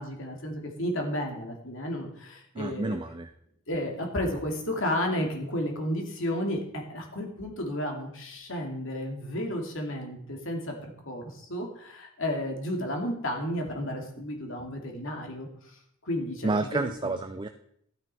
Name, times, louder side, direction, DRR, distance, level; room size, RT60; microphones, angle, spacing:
voice 1, 0.0-3.0 3.7-17.2, left 1 dB, 60° left, 2 dB, 2.6 m, -32 dB
voice 2, 2.5-3.3 16.4-17.5, right 2 dB, 20° right, 8 dB, 0.5 m, -30 dB
13.0 x 9.7 x 4.4 m, 0.70 s
head